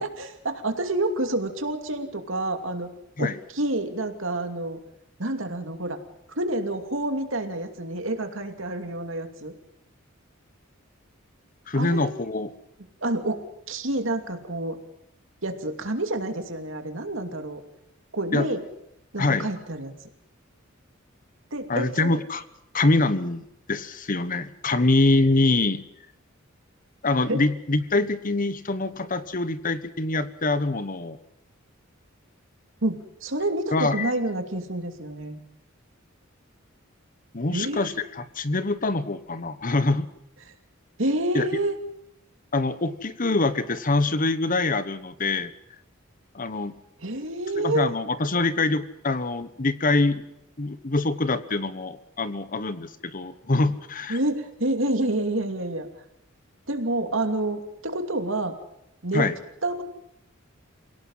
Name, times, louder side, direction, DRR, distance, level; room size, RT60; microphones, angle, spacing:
voice 1, 0.0-2.9 3.2-4.8 5.2-6.0 6.4-9.5 11.8-12.1 13.0-14.8 15.4-17.6 18.1-18.6 19.1-19.9 21.5-22.2 27.3-27.4 32.8-35.4 37.5-37.9 40.4-40.5 41.0-41.7 47.0-47.9 54.1-55.9 56.7-58.5 59.0-59.2 59.6-59.8, right 1 dB, 65° right, 6 dB, 2.7 m, -28 dB
voice 2, 11.7-12.5 18.3-18.5 19.2-19.5 21.7-22.4 22.7-23.4 23.7-25.8 27.0-31.2 33.7-34.1 37.3-40.1 41.3-41.5 42.5-45.5 46.3-46.7 47.6-50.2 50.6-54.2 59.1-59.4, left 2 dB, 40° left, 13 dB, 1.1 m, -24 dB
28.0 x 17.5 x 5.7 m, 0.80 s
head